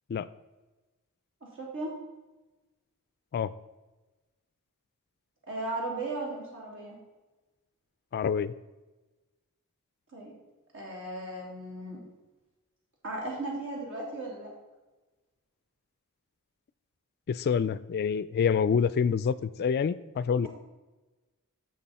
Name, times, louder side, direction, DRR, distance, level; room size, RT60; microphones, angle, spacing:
voice 1, 1.6-1.9 5.5-7.0 10.1-10.4 10.7-12.0 13.0-14.5, right 2 dB, 60° right, -3 dB, 3.1 m, -36 dB
voice 2, 8.1-8.5 17.3-20.5, left 6 dB, 45° left, 16 dB, 0.3 m, -27 dB
11.5 x 6.9 x 4.2 m, 1.2 s
head